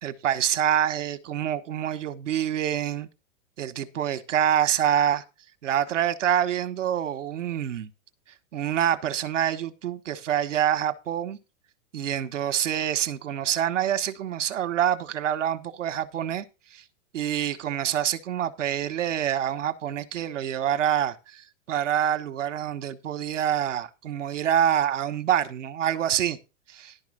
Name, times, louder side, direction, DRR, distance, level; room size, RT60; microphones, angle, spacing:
voice 1, 0.0-3.1 3.6-5.2 5.6-7.9 8.5-11.4 11.9-16.4 16.7-16.8 17.1-26.4 26.7-26.9, right 10 dB, 80° right, 1.3 m, -26 dB
11.5 x 4.9 x 6.4 m
hypercardioid pair, 115°, 37 cm